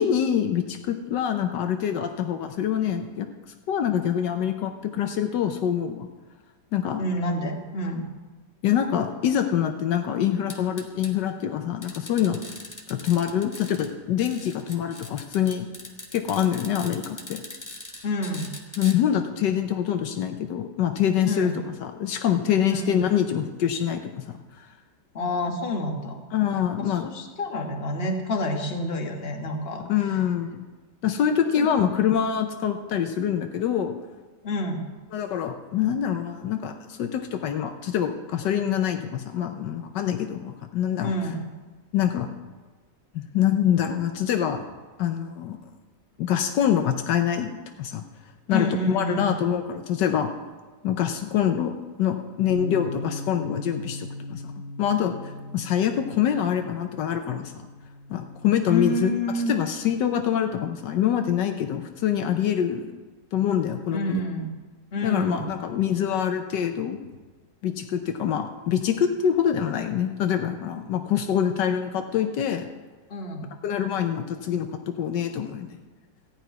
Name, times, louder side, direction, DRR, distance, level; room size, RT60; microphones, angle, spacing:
voice 1, 0.0-3.3 3.7-6.1 6.7-7.0 8.6-12.4 12.9-15.7 16.1-17.4 18.8-21.5 21.8-24.4 26.3-27.1 29.9-30.6 31.0-33.9 35.1-41.1 41.9-42.3 43.1-44.6 45.0-45.6 46.2-48.0 48.5-50.3 50.8-54.4 54.8-55.2 55.5-57.5 58.1-59.1 59.5-63.0 63.3-64.2 65.0-67.0 67.6-72.7 73.6-75.7, left 9 dB, 80° left, 6 dB, 1.4 m, -25 dB
voice 2, 7.0-8.1 18.0-18.5 21.2-21.6 22.7-23.0 25.1-26.2 26.8-29.8 31.5-31.7 34.4-34.8 41.0-41.4 48.5-49.3 58.7-59.5 63.9-64.5 64.9-65.5 73.1-73.5, left 1 dB, 35° left, 2 dB, 1.6 m, -28 dB
sound 1, 10.5-11.1 11.8-13.9 14.2-18.9, left 2 dB, 10° left, 1.0 m, -41 dB
Bass guitar, 52.5-58.7, left 2 dB, 55° left, 1.8 m, -38 dB
14.5 x 5.7 x 9.2 m, 1.3 s
omnidirectional pair, 1.9 m